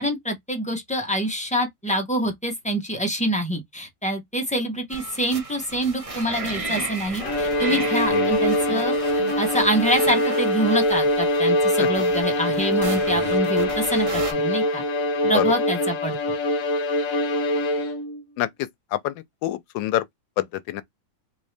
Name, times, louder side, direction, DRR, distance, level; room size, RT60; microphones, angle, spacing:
voice 1, 0.0-14.8 15.3-16.2, equal, 5° left, 0.7 m, -26 dB
sound 1, 4.9-14.3, right 3 dB, 30° right, 0.6 m, -35 dB
Bowed string instrument, 7.2-18.2, left 1 dB, 55° left, 1.0 m, -23 dB
voice 2, 18.4-19.1 19.4-20.0 20.4-20.8, left 13 dB, 85° left, 1.3 m, -26 dB
3.8 x 2.7 x 3.2 m
omnidirectional pair, 2.0 m